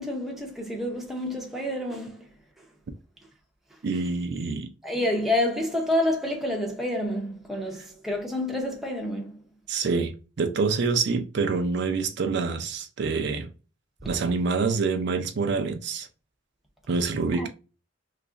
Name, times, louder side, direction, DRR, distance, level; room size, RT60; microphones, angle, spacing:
voice 1, 0.0-2.3 4.8-9.4 14.0-14.1 17.3-17.5, left 1 dB, ahead, 0.6 m, -28 dB
voice 2, 3.8-4.7 9.7-13.5 14.1-16.1 16.9-17.5, right 4 dB, 55° right, 0.4 m, -26 dB
2.9 x 2.4 x 3.6 m
head